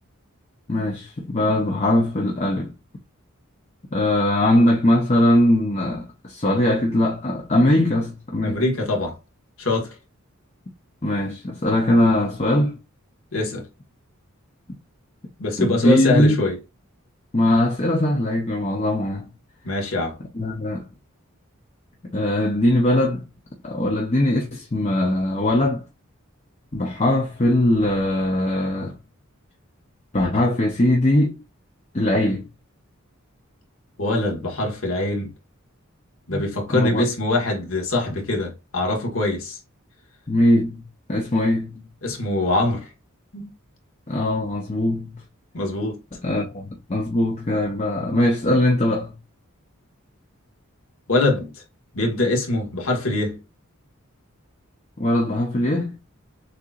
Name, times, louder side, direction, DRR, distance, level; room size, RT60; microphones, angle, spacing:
voice 1, 0.7-2.7 3.9-8.6 11.0-12.8 14.7-14.8 15.6-16.4 17.3-19.3 20.3-20.9 22.0-23.2 23.6-25.8 26.7-29.0 30.1-31.4 31.9-32.5 36.3-36.4 36.7-37.1 40.3-41.9 44.1-45.2 46.2-49.2 55.0-56.0, left 1 dB, 30° left, 0.7 m, -21 dB
voice 2, 8.4-9.2 9.6-9.9 13.3-13.7 15.4-16.6 19.6-20.2 34.0-35.3 36.3-39.6 42.0-42.9 43.3-43.4 45.5-46.0 51.1-51.5 51.9-53.4, left 2 dB, 70° left, 1.6 m, -23 dB
6.6 x 2.8 x 2.5 m
head